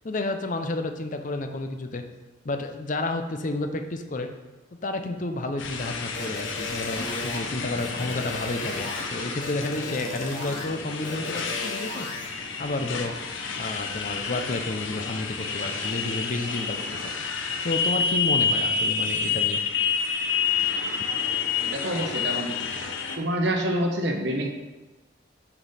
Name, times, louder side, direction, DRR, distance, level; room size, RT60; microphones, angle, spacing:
voice 1, 0.0-2.0 2.4-4.3 4.8-13.1 13.6-17.1 17.6-19.6, left 2 dB, 40° left, 6 dB, 0.6 m, -31 dB
Motorcycle, 5.6-23.2, left 5 dB, 85° left, 0.8 m, -29 dB
sound 1, 6.1-7.4 7.8-9.0 9.4-10.6 11.0-12.3, left 2 dB, 65° left, 1.6 m, -36 dB
voice 2, 21.6-22.5 23.2-24.5, right 1 dB, 60° right, 3 dB, 0.9 m, -27 dB
7.1 x 5.3 x 4.1 m, 1.2 s
head